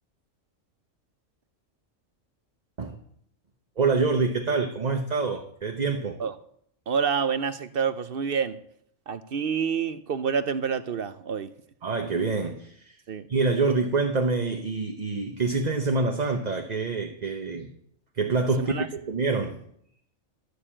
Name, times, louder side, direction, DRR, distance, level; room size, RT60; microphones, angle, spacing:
voice 1, 3.8-6.2 11.8-13.0 13.3-17.7 18.2-19.6, right 4 dB, 35° right, 1.0 m, -26 dB
voice 2, 6.9-8.6 9.1-11.5 13.1-13.3 18.6-18.9, right 6 dB, 55° right, 0.7 m, -28 dB
13.5 x 6.6 x 8.7 m
omnidirectional pair, 1.4 m